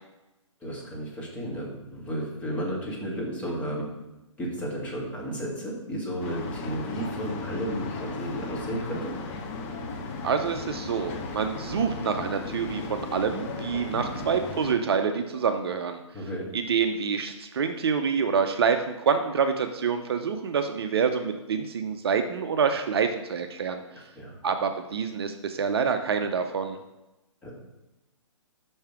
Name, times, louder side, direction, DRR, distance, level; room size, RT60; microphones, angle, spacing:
voice 1, 0.6-3.9 4.4-9.1 13.9-14.4 16.1-16.5 23.9-24.4 27.4-27.5, right 1 dB, 10° left, -5 dB, 1.9 m, -33 dB
sound 1, 6.2-14.7, left 3 dB, 25° left, 0.9 m, -36 dB
voice 2, 10.2-16.0 16.5-23.8 24.4-26.8, right 6 dB, 50° right, 7 dB, 0.6 m, -27 dB
5.8 x 5.5 x 5.8 m, 1.0 s
hypercardioid pair, 150°, 16 cm